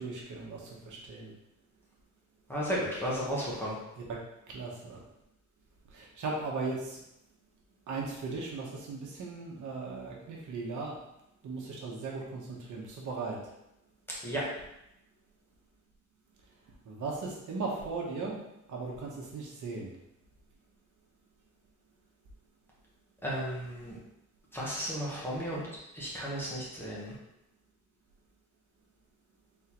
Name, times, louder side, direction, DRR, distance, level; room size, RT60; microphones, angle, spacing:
voice 1, 0.0-1.3 4.1-4.2 4.5-5.0 5.9-7.0 7.9-11.0 11.4-13.4 16.8-18.4 18.7-19.9, right 3 dB, 70° right, -2 dB, 1.1 m, -37 dB
voice 2, 2.5-3.8 14.2-14.4 23.2-24.0 24.5-25.6 25.9-27.1, equal, 5° left, -6 dB, 1.2 m, -34 dB
4.2 x 3.7 x 3.0 m, 0.85 s
cardioid pair, 145°, 31 cm